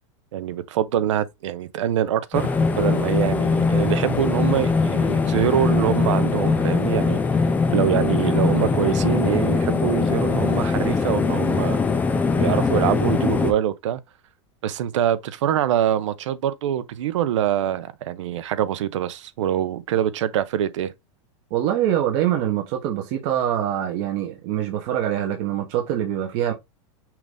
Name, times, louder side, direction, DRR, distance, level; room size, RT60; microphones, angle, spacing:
voice 1, 0.3-7.2 7.7-11.8 12.4-14.0 14.6-20.9, right 10 dB, 85° right, 0.7 m, -24 dB
sound 1, 2.3-13.5, left 4 dB, 10° left, 0.5 m, -21 dB
voice 2, 21.5-26.5, right 11 dB, 45° right, 0.9 m, -24 dB
5.8 x 2.6 x 3.4 m
supercardioid pair, 160°, 15 cm